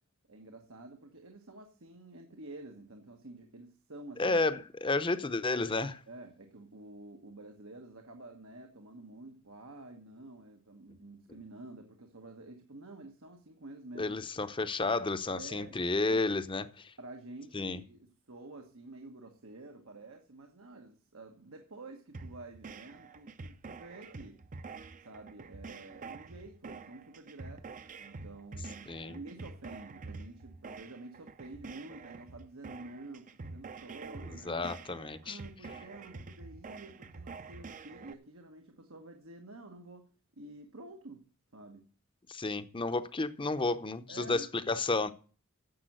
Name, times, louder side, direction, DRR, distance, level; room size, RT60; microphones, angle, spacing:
voice 1, 0.3-4.4 6.1-14.2 15.4-16.2 17.0-24.4 25.0-27.6 28.0-34.7 35.2-40.1 40.4-41.2 41.5-41.8 44.1-44.5, right 2 dB, 85° right, 1.4 m, -49 dB
voice 2, 4.2-6.0 14.0-16.9 17.5-17.8 28.9-29.2 34.2-35.4 42.3-45.1, left 3 dB, 25° left, 0.7 m, -32 dB
sound 1, 22.1-38.1, right 4 dB, 40° right, 0.6 m, -47 dB
10.5 x 7.3 x 7.7 m
head